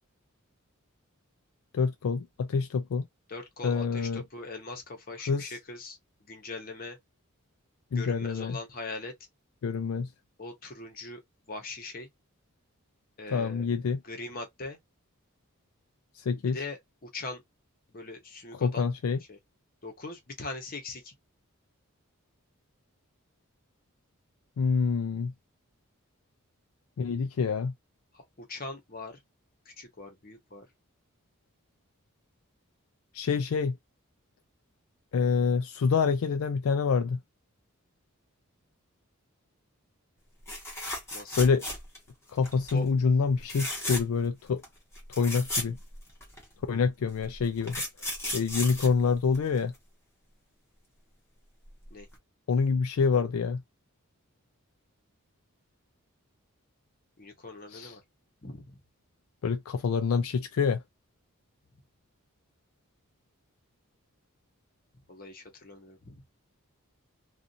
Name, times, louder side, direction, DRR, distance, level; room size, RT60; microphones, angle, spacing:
voice 1, 1.7-3.0 3.6-4.2 5.3-5.6 7.9-8.6 9.6-10.1 13.3-14.0 16.2-16.6 18.6-19.2 24.6-25.3 27.0-27.7 33.1-33.8 35.1-37.2 41.4-41.6 42.3-44.6 45.2-45.8 46.7-47.8 48.3-49.7 52.5-53.6 57.7-57.9 59.4-60.8, left 5 dB, 75° left, 0.4 m, -26 dB
voice 2, 3.3-6.0 6.3-7.0 7.9-9.1 10.4-11.2 11.5-12.1 13.2-13.7 14.0-14.8 16.5-17.4 17.9-18.9 19.3-19.4 19.8-21.1 28.1-29.2 29.7-30.7 41.1-41.6 42.7-42.9 51.9-52.1 57.2-58.0 58.4-58.8 65.1-66.2, left 3 dB, 40° left, 0.9 m, -41 dB
sound 1, 40.5-42.1 42.4-42.8 43.4-44.3 44.6-44.7 44.9-46.4 47.2-49.8 51.7-51.8 52.1-52.2, left 1 dB, 10° left, 1.0 m, -35 dB
2.5 x 2.4 x 2.5 m
head